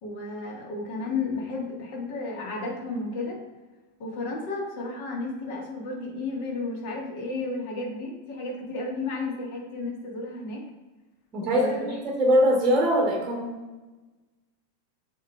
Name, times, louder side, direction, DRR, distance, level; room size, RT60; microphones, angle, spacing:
voice 1, 0.0-3.4 4.0-10.6 11.4-11.9, left 3 dB, 50° left, -1 dB, 1.4 m, -33 dB
voice 2, 11.3-13.5, equal, 25° right, -1 dB, 1.0 m, -22 dB
7.1 x 3.2 x 2.3 m, 1.2 s
figure-of-eight pair, 90°, 0 cm